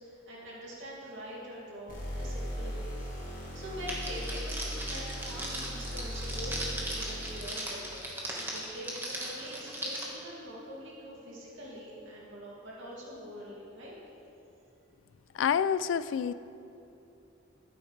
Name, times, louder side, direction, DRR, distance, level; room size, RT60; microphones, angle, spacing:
voice 1, 0.0-8.1 8.5-14.0, equal, 75° right, -5 dB, 2.3 m, -44 dB
sound 1, 1.9-7.6, equal, 45° left, 2.2 m, -38 dB
Crackle, 3.9-10.0, right 1 dB, 10° right, 1.5 m, -38 dB
voice 2, 15.3-16.3, left 7 dB, 75° left, 15 dB, 0.3 m, -27 dB
13.0 x 9.3 x 3.3 m, 2.8 s
head